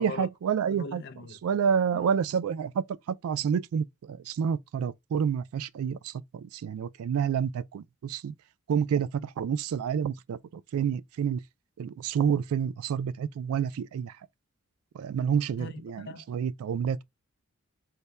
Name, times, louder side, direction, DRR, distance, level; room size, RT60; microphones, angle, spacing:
voice 1, 0.0-1.0 1.4-8.3 8.7-11.4 11.8-14.2 14.9-17.0, right 7 dB, 75° right, 0.3 m, -29 dB
voice 2, 0.7-1.4 1.9-2.1 15.6-16.3, left 2 dB, 50° left, 0.5 m, -40 dB
3.3 x 2.2 x 4.0 m
head